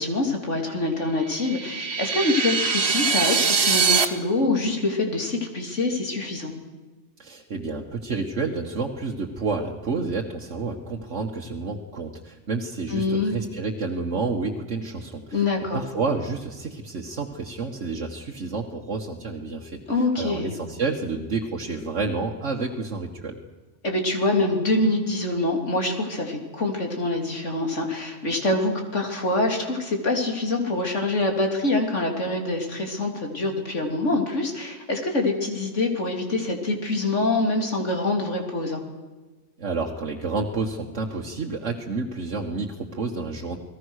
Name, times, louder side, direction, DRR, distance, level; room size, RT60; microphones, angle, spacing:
voice 1, 0.0-6.5 12.9-13.3 15.3-15.8 19.9-20.6 23.8-38.8, left 2 dB, 75° left, 2 dB, 3.8 m, -25 dB
sound 1, 1.3-4.0, right 5 dB, 60° right, 1.8 m, -22 dB
voice 2, 7.2-15.4 15.7-23.4 39.6-43.6, right 4 dB, 75° right, -1 dB, 1.9 m, -30 dB
29.5 x 20.0 x 6.5 m, 1.3 s
omnidirectional pair, 1.3 m